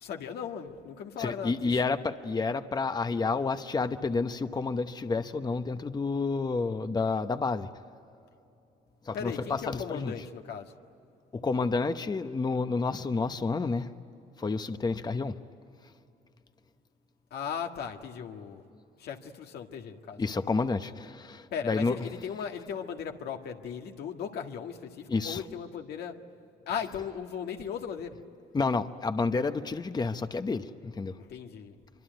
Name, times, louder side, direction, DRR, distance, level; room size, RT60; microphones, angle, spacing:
voice 1, 0.0-1.7 9.1-10.7 17.3-18.6 19.0-20.2 21.5-26.2 26.7-28.2 31.2-31.8, left 7 dB, 75° left, 1.8 m, -37 dB
voice 2, 1.2-7.7 9.1-10.1 11.3-13.9 14.4-15.4 20.2-22.0 25.1-25.4 28.5-31.2, left 4 dB, 25° left, 0.9 m, -30 dB
25.5 x 24.0 x 9.3 m
cardioid pair, 90°, 17 cm